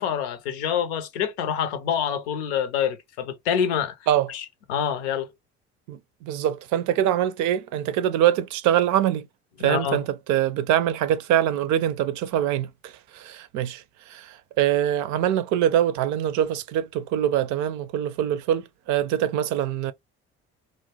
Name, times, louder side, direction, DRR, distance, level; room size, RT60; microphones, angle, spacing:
voice 1, 0.0-4.0 4.3-5.3 9.6-10.0, left 8 dB, 90° left, 0.6 m, -26 dB
voice 2, 5.9-9.3 9.6-13.8 14.1-19.9, right 11 dB, 65° right, 0.5 m, -24 dB
2.5 x 2.1 x 2.9 m
hypercardioid pair, 65°, 32 cm